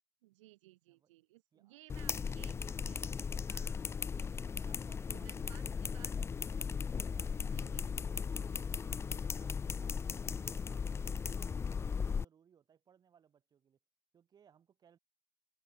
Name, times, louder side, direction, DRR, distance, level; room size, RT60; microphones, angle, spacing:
voice 1, 0.2-3.1 3.5-4.3 5.1-6.1 7.4-7.9 8.4-8.6, right 18 dB, 70° right, 2.1 m, -60 dB
sound 1, 1.9-12.2, left 6 dB, 15° left, 0.8 m, -37 dB
voice 2, 4.1-6.0 6.6-6.8 7.0-9.0 9.3-13.8 14.1-15.0, right 8 dB, 25° right, 7.6 m, -67 dB
supercardioid pair, 125°, 16 cm